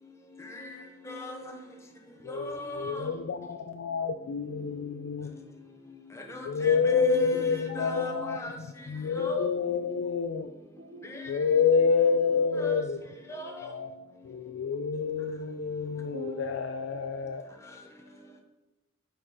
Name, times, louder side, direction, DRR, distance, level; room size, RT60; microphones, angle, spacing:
voice 1, 0.4-1.5 2.3-3.2 4.5-4.7 6.1-9.5 11.0-11.4 12.5-12.8 13.3-13.7 17.7-17.8, left 2 dB, 15° left, 2 dB, 0.7 m, -39 dB
voice 2, 1.5-2.0 3.2-3.3 10.8-11.1 15.0-15.2 15.9-16.7 18.0-18.4, right 2 dB, 75° right, 3 dB, 0.6 m, -46 dB
voice 3, 2.2-5.4 6.4-10.5 11.3-13.0 13.6-13.9 14.2-17.4, left 5 dB, 80° left, 6 dB, 0.4 m, -28 dB
8.6 x 4.2 x 3.6 m, 1.0 s
head